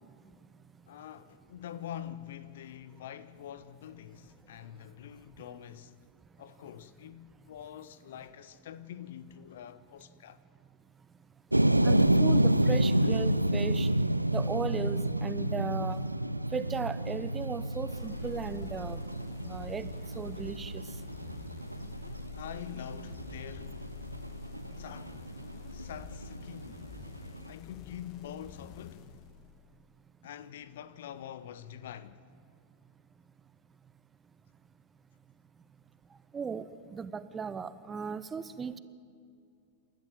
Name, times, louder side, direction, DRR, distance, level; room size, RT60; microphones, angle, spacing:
voice 1, 0.9-6.0 6.4-10.4 22.3-23.8 24.8-25.2 25.7-26.8 27.4-29.1 30.2-32.3, left 10 dB, 60° left, 0.9 m, -45 dB
sound 1, 11.5-27.5, right 1 dB, 85° right, 0.5 m, -30 dB
voice 2, 11.8-13.9 14.3-16.0 16.5-19.0 19.4-19.9 20.1-20.8 36.3-38.8, right 6 dB, 20° right, 0.9 m, -36 dB
sound 2, 17.9-29.8, left 9 dB, 40° left, 1.4 m, -48 dB
28.0 x 13.0 x 7.7 m
figure-of-eight pair, 90°, 0 cm